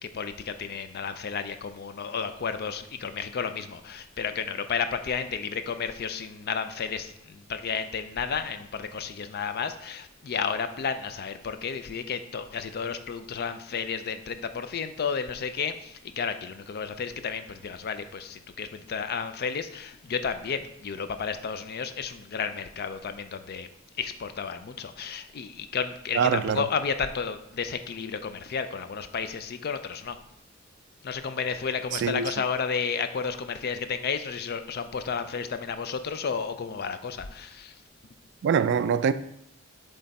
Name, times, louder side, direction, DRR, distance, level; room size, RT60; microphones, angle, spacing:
voice 1, 0.0-23.7 24.0-30.2 31.0-37.7, left 6 dB, 50° left, 0.4 m, -32 dB
voice 2, 26.1-26.6 31.9-32.3 38.4-39.1, right 7 dB, 60° right, 0.3 m, -24 dB
7.4 x 3.4 x 4.1 m
head